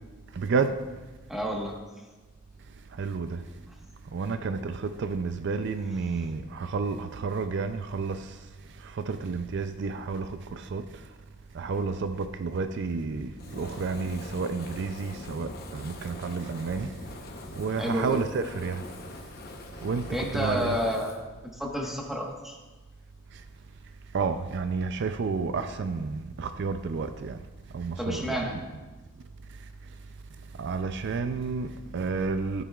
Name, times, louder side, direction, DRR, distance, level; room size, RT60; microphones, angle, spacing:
voice 1, 0.3-0.8 2.9-3.4 4.1-8.5 8.7-11.0 11.5-17.0 17.6-18.8 19.8-20.8 23.3-23.4 24.1-27.4 27.7-28.2 29.6-29.7 30.6-32.6, right 4 dB, 55° right, 0.4 m, -31 dB
voice 2, 1.3-1.7 6.1-6.3 17.8-18.2 20.1-21.1 21.5-22.6 28.0-28.6, equal, ahead, 1.3 m, -30 dB
Fire, 13.4-21.2, left 2 dB, 45° left, 0.9 m, -43 dB
13.5 x 9.1 x 2.4 m
head